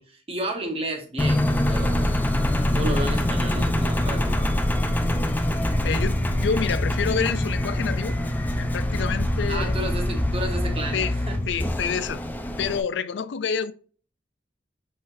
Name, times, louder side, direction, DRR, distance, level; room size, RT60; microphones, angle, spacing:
voice 1, 0.0-2.1 2.7-4.4 9.5-11.4, right 1 dB, 35° right, 1.1 m, -32 dB
Engine, 1.2-12.8, left 1 dB, 10° left, 0.4 m, -24 dB
voice 2, 5.8-8.2 8.6-9.8 10.9-11.1 11.5-12.2 12.6-13.7, left 6 dB, 85° left, 0.4 m, -28 dB
4.0 x 3.9 x 2.5 m
head